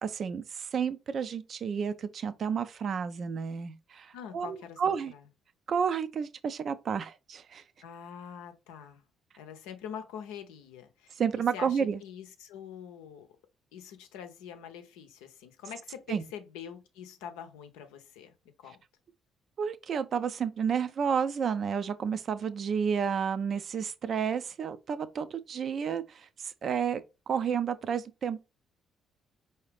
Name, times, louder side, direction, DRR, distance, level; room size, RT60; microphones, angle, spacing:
voice 1, 0.0-5.1 5.7-7.6 11.2-12.0 16.1-16.2 19.6-28.4, right 7 dB, 55° right, 0.5 m, -31 dB
voice 2, 4.1-5.3 7.8-9.0 9.4-11.2 11.5-13.3 13.7-18.8, left 8 dB, 80° left, 0.6 m, -45 dB
4.7 x 2.8 x 3.3 m
hypercardioid pair, 50°, 0 cm